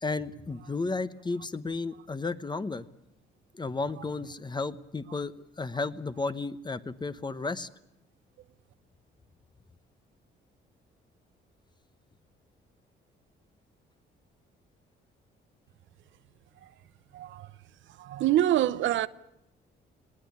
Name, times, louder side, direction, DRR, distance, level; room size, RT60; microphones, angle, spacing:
voice 1, 0.0-2.8 3.5-7.7, left 3 dB, 20° left, 1.0 m, -33 dB
voice 2, 17.1-17.5 18.0-19.1, right 13 dB, 75° right, 0.8 m, -25 dB
20.0 x 18.5 x 8.6 m
cardioid pair, 90°, 20 cm